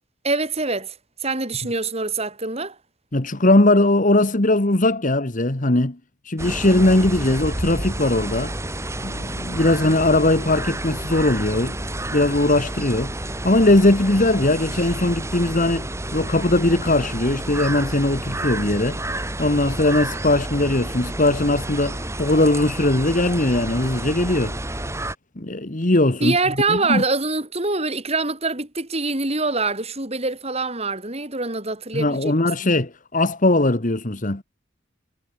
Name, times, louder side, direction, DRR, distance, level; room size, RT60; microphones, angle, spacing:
voice 1, 0.2-0.9 1.2-2.7 26.2-32.5, right 3 dB, 30° right, 4.7 m, -24 dB
voice 2, 3.1-6.0 6.3-8.5 9.0-11.8 12.1-19.0 19.4-24.6 25.4-26.4 26.7-27.0 31.9-34.4, left 2 dB, 40° left, 1.6 m, -20 dB
sound 1, 6.4-25.2, right 1 dB, 15° right, 3.2 m, -30 dB
head